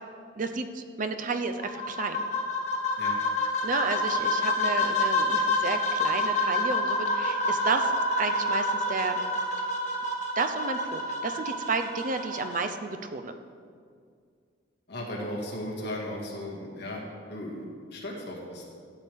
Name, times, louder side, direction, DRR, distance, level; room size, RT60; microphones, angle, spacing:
voice 1, 0.4-2.2 3.6-7.9 8.2-9.2 10.4-13.3, right 4 dB, 40° right, 8 dB, 0.5 m, -31 dB
sound 1, 1.6-12.6, left 1 dB, 35° left, 1.4 m, -28 dB
voice 2, 14.9-18.7, left 1 dB, 55° left, -2 dB, 1.9 m, -36 dB
12.5 x 8.2 x 3.5 m, 2.1 s
head